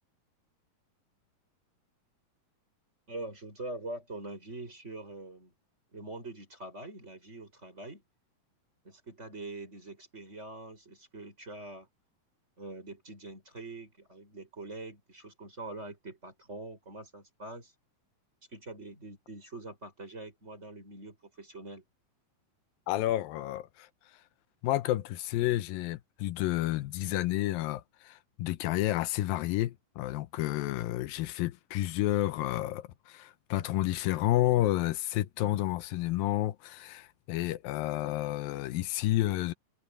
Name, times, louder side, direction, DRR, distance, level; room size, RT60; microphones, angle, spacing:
voice 1, 3.1-5.5 5.9-8.0 8.8-11.9 12.6-17.7 18.5-21.8, right 2 dB, 20° right, 5.8 m, -44 dB
voice 2, 22.9-23.9 24.6-39.5, left 15 dB, 85° left, 2.6 m, -30 dB
omnidirectional pair, 4.0 m